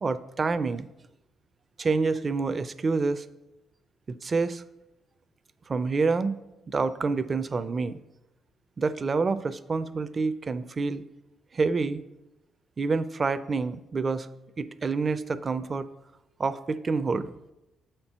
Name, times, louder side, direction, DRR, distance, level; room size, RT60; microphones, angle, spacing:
voice 1, 0.0-0.9 1.8-3.2 4.1-4.6 5.7-6.4 6.7-8.0 8.8-11.0 11.5-12.0 12.8-14.3 14.6-15.9 16.4-17.3, right 4 dB, 35° right, 13 dB, 0.4 m, -27 dB
7.0 x 4.4 x 5.4 m, 0.95 s
cardioid pair, 90°, 0 cm